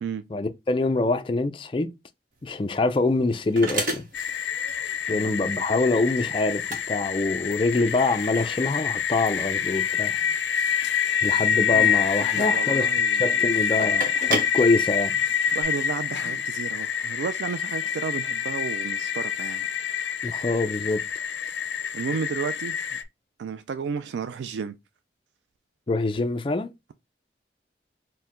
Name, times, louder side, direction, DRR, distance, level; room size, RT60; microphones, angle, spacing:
voice 1, 0.3-1.9 2.4-4.1 5.1-10.1 11.2-12.9 13.2-15.1 20.2-21.0 25.9-26.7, left 3 dB, 30° left, 0.4 m, -25 dB
sound 1, 2.3-15.6, right 1 dB, 50° right, 0.9 m, -36 dB
sound 2, 4.1-23.0, left 8 dB, 90° left, 0.4 m, -26 dB
voice 2, 5.1-5.6 11.7-12.0 12.3-13.3 15.5-19.7 21.9-23.0 23.4-24.7, right 6 dB, 85° right, 0.3 m, -33 dB
4.4 x 2.1 x 3.7 m
head